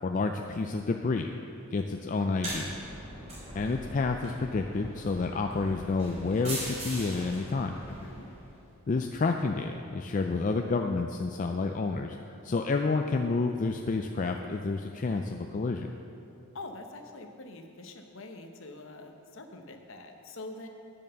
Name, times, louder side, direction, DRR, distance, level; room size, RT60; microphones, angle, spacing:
voice 1, 0.0-1.3 1.7-2.8 3.5-7.7 8.9-12.2 12.4-15.9, left 3 dB, 35° left, 4 dB, 0.3 m, -29 dB
sound 1, 2.2-8.6, right 1 dB, 30° right, 3.0 m, -41 dB
voice 2, 7.9-8.3 16.5-20.7, left 2 dB, 60° left, 5 dB, 0.9 m, -45 dB
10.0 x 7.2 x 6.8 m, 2.7 s
head